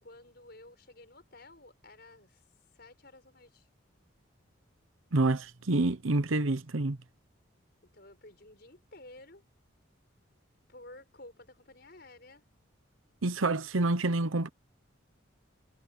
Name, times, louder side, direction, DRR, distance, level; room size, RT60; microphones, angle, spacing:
voice 1, 0.0-2.5 2.7-3.7 7.8-9.4 10.7-12.5, left 2 dB, 50° left, 5.8 m, -53 dB
voice 2, 5.1-7.0 13.2-14.5, right 2 dB, 85° right, 1.0 m, -27 dB
head